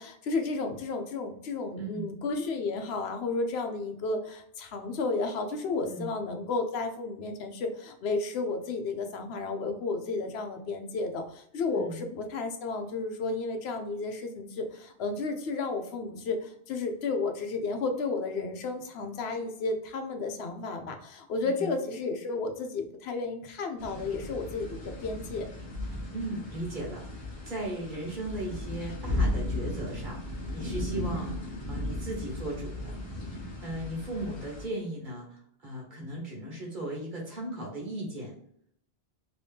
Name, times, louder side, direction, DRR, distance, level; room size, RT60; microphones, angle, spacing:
voice 1, 0.0-25.5, left 3 dB, 85° left, 5 dB, 0.9 m, -32 dB
voice 2, 1.8-2.1 5.8-6.1 11.7-12.0 21.4-21.7 26.1-27.2 27.5-33.0 33.3-38.3, right 1 dB, 50° right, -3 dB, 1.4 m, -37 dB
sound 1, 23.8-34.7, left 1 dB, 30° left, 0.9 m, -35 dB
3.0 x 2.7 x 3.4 m, 0.67 s
omnidirectional pair, 1.0 m